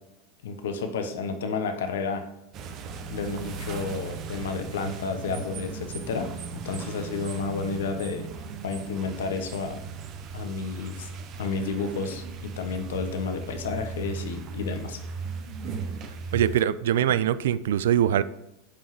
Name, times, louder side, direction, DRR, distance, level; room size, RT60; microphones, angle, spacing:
voice 1, 0.4-2.2 3.1-8.3 8.6-9.8 10.3-11.1 11.4-15.0, left 4 dB, 70° left, 7 dB, 1.0 m, -31 dB
sound 1, 2.5-16.6, right 5 dB, 40° right, 0.8 m, -37 dB
voice 2, 16.3-18.2, right 10 dB, 65° right, 17 dB, 0.3 m, -23 dB
9.8 x 5.6 x 3.1 m, 0.90 s
figure-of-eight pair, 85°, 0 cm